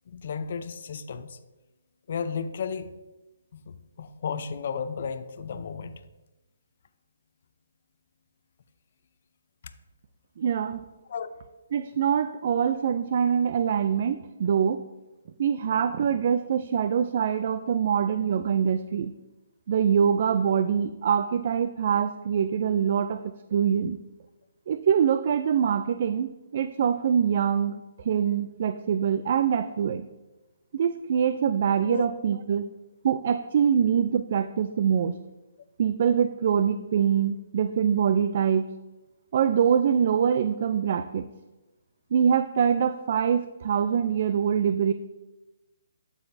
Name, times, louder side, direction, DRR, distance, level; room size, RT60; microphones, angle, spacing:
voice 1, 0.1-1.4 2.1-2.9 3.5-5.9 11.1-11.3 31.9-32.0, left 6 dB, 55° left, 10 dB, 0.5 m, -33 dB
voice 2, 10.4-10.9 11.7-14.8 15.4-19.1 19.7-23.2 23.5-24.0 24.7-30.1 30.7-32.7 33.0-35.2 35.8-38.7 39.3-41.3 42.1-44.9, right 7 dB, 50° right, 11 dB, 0.3 m, -24 dB
11.5 x 7.1 x 2.7 m, 1.1 s
hypercardioid pair, 155°, 0 cm